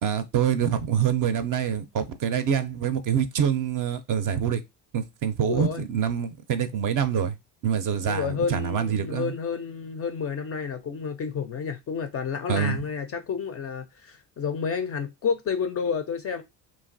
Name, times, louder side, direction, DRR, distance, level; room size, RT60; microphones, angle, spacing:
voice 1, 0.0-4.6 4.9-7.4 7.6-9.3 12.5-12.8, right 8 dB, 45° right, 0.5 m, -25 dB
voice 2, 5.5-5.8 8.1-16.4, left 6 dB, 35° left, 0.4 m, -30 dB
3.0 x 2.3 x 2.5 m
hypercardioid pair, 60°, 48 cm